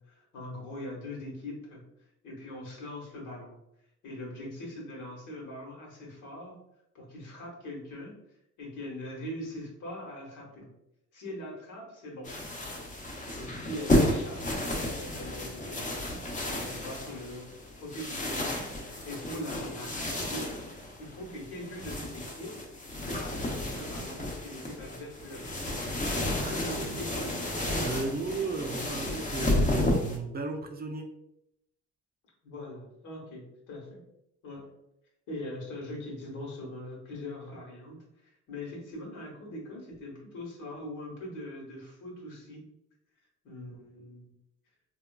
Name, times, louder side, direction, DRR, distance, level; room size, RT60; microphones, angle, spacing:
voice 1, 0.1-1.8 2.2-3.6 4.0-6.6 6.9-8.1 8.6-10.7 11.1-12.3 13.4-18.7 19.0-20.5 21.0-22.6 23.2-25.7 26.4-27.4 32.4-34.0 34.4-34.7 35.3-42.6 43.4-44.3, left 1 dB, 80° left, -1 dB, 1.2 m, -42 dB
sound 1, 12.2-30.2, left 1 dB, 25° left, 0.7 m, -32 dB
voice 2, 26.4-27.4 27.8-31.1, right 3 dB, 30° right, 4 dB, 0.4 m, -35 dB
3.6 x 2.4 x 2.2 m, 0.81 s
cardioid pair, 90°, 30 cm